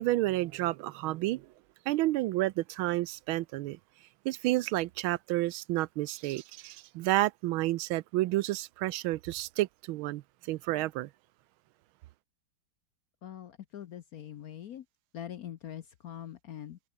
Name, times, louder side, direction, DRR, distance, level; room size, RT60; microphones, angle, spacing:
voice 1, 0.0-1.5 1.9-3.8 4.2-11.1, right 17 dB, 85° right, 1.4 m, -30 dB
voice 2, 13.2-14.9 15.1-16.8, left 10 dB, 60° left, 1.0 m, -43 dB
omnidirectional pair, 2.2 m